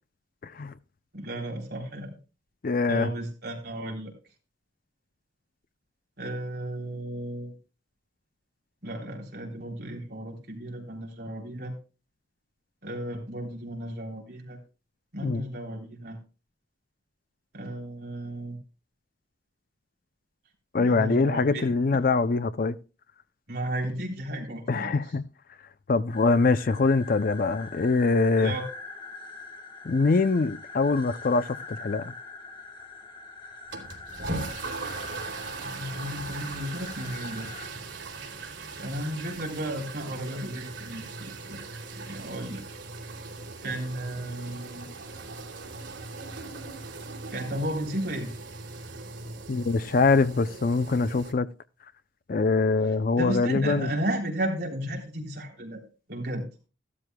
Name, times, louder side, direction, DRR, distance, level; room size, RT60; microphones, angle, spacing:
voice 1, 0.4-0.7 2.6-3.1 15.2-15.4 20.7-22.8 24.7-25.2 25.9-28.5 29.8-32.1 49.5-51.5 52.3-53.9, left 3 dB, 50° left, 0.4 m, -23 dB
voice 2, 1.1-2.2 2.9-4.1 6.2-7.5 8.8-11.7 12.8-14.6 15.1-16.2 17.5-18.6 20.8-21.6 23.5-25.0 28.4-28.6 35.6-37.5 38.8-41.6 42.0-42.6 43.6-44.9 47.3-48.3 53.2-55.8 56.1-56.4, right 1 dB, 55° right, 3.6 m, -34 dB
sound 1, 26.1-37.7, left 3 dB, 25° left, 1.7 m, -43 dB
sound 2, 33.7-51.3, right 3 dB, 90° right, 2.8 m, -39 dB
14.5 x 12.5 x 2.2 m
head